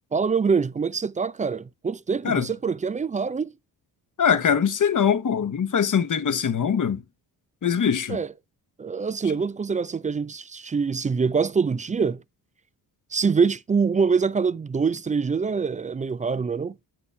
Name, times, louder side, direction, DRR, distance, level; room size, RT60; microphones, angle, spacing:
voice 1, 0.1-3.5 8.1-8.3 8.8-12.2 13.1-16.8, right 5 dB, 20° right, 0.3 m, -24 dB
voice 2, 4.2-7.0 7.6-8.2, left 7 dB, 40° left, 1.0 m, -22 dB
8.0 x 4.9 x 3.3 m
hypercardioid pair, 40°, 49 cm